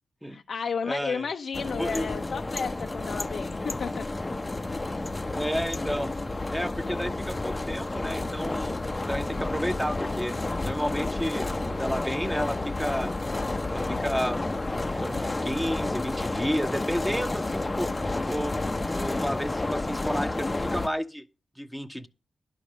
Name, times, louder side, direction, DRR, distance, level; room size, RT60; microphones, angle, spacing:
voice 1, 0.3-4.1, left 6 dB, 70° left, 0.7 m, -33 dB
voice 2, 0.8-1.3 1.7-2.1 5.3-6.2 6.5-8.8 9.1-10.4 10.6-13.1 13.7-14.4 14.8-17.9 18.3-18.6 18.9-21.2 21.6-22.1, equal, 5° right, 1.0 m, -31 dB
sound 1, 1.5-20.9, left 2 dB, 25° left, 0.7 m, -30 dB
11.0 x 5.2 x 7.5 m
cardioid pair, 75°, 0 cm